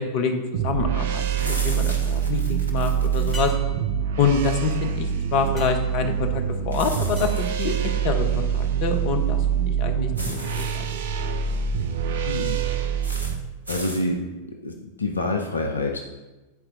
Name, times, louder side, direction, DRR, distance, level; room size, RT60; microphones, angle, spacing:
voice 1, 0.0-3.5 4.2-7.3 7.6-10.7, left 5 dB, 45° left, 6 dB, 0.9 m, -26 dB
sound 1, 0.5-13.4, right 8 dB, 55° right, 0.6 m, -25 dB
sound 2, 1.4-3.5 6.7-7.6 10.1-10.8 13.0-13.3 13.7-14.0, right 1 dB, 80° right, 1.0 m, -36 dB
sound 3, 3.3-8.5 12.9-13.0, left 1 dB, 15° right, 2.1 m, -46 dB
voice 2, 12.3-12.6 13.3-13.4 13.7-14.3 14.6-16.0, left 2 dB, 75° left, 3 dB, 0.6 m, -27 dB
9.6 x 4.4 x 3.8 m, 1.1 s
figure-of-eight pair, 90°, 0 cm